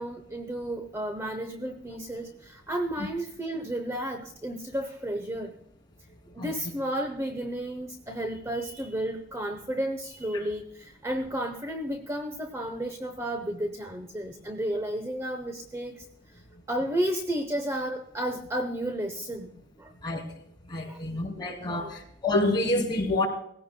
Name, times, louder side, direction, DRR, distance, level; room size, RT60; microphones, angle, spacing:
voice 1, 0.0-5.6 6.3-16.1 16.7-19.5 19.8-19.9 20.9-21.2 21.6-22.0, right 1 dB, 15° right, 6 dB, 0.8 m, -32 dB
voice 2, 20.7-23.3, left 2 dB, 20° left, 0 dB, 2.8 m, -27 dB
19.0 x 16.0 x 2.2 m, 0.72 s
head